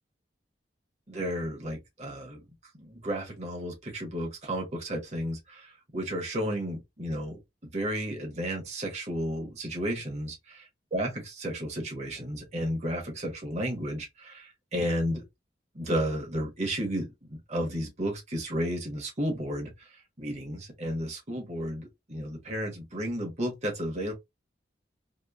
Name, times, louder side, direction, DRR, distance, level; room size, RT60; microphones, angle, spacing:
voice 1, 1.1-2.4 2.7-7.4 7.7-10.4 10.9-15.2 15.7-19.9 20.2-24.1, equal, 40° right, 0.9 m, -32 dB
2.9 x 2.1 x 2.3 m
head